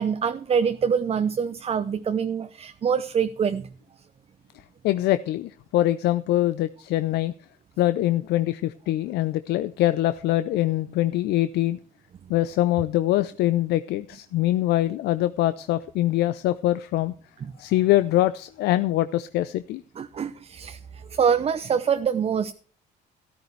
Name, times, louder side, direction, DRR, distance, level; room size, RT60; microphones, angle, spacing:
voice 1, 0.0-3.7 17.4-17.5 20.0-20.8 21.1-22.5, right 7 dB, 35° right, 0.7 m, -25 dB
voice 2, 4.8-7.3 7.8-11.8 12.3-17.1 17.6-19.8, left 14 dB, 80° left, 0.6 m, -23 dB
13.0 x 13.0 x 3.2 m
cardioid pair, 110°, 17 cm